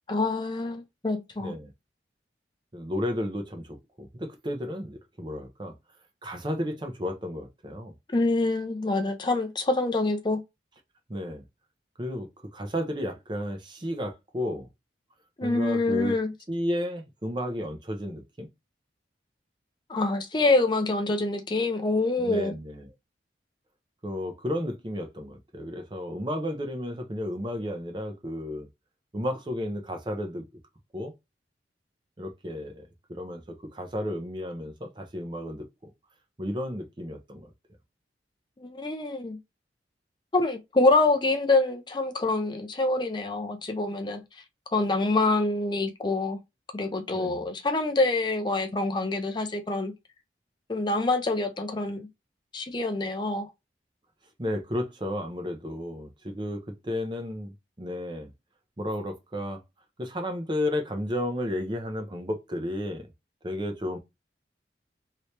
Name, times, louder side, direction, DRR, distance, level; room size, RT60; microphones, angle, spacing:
voice 1, 0.1-1.5 8.1-10.4 15.4-16.3 19.9-22.5 38.6-39.4 40.3-44.2 44.7-46.4 46.7-49.9 50.7-52.1 52.5-53.5, left 2 dB, 25° left, 0.5 m, -26 dB
voice 2, 1.4-1.7 2.7-5.7 6.2-7.9 11.1-11.4 12.0-14.7 15.4-16.1 16.5-18.5 22.2-22.9 24.0-28.7 29.1-30.5 30.9-31.1 32.2-35.7 36.4-37.5 47.1-47.5 54.4-58.3 58.8-59.6 60.0-63.1 63.4-64.0, left 1 dB, 25° right, 0.7 m, -33 dB
3.0 x 2.8 x 3.1 m
head